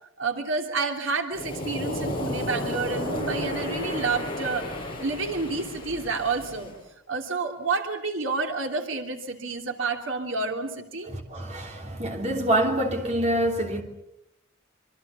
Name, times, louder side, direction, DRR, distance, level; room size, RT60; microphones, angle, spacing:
voice 1, 0.2-4.7 5.0-6.7 7.1-11.1, right 4 dB, 80° right, 3.1 m, -29 dB
Waves surf, 1.3-6.8, left 1 dB, 25° left, 5.9 m, -32 dB
voice 2, 11.1-13.8, right 1 dB, 35° right, 3.2 m, -26 dB
26.0 x 25.0 x 7.0 m
head